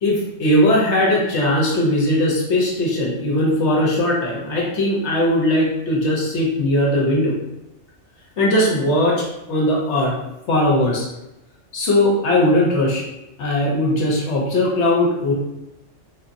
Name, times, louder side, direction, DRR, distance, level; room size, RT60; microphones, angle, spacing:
voice 1, 0.0-7.4 8.4-10.2 10.5-11.1 11.7-13.0 13.4-15.3, left 1 dB, 70° left, -3 dB, 1.1 m, -19 dB
3.7 x 2.8 x 2.5 m, 0.91 s
omnidirectional pair, 1.3 m